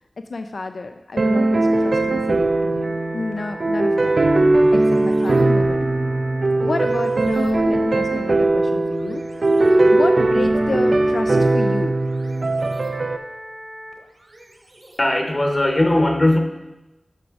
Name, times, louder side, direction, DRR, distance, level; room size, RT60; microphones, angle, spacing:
voice 1, 0.3-4.2 4.7-5.9 6.6-9.5 9.9-12.0, left 3 dB, 70° left, 7 dB, 0.3 m, -30 dB
sound 1, 1.2-13.2, right 2 dB, 60° right, 0.4 m, -19 dB
sound 2, 2.8-15.7, equal, 45° right, 1.1 m, -41 dB
voice 2, 15.0-16.4, left 1 dB, 30° left, 4 dB, 0.9 m, -18 dB
10.5 x 6.1 x 3.7 m, 1.0 s
wide cardioid pair, 85°, 0 cm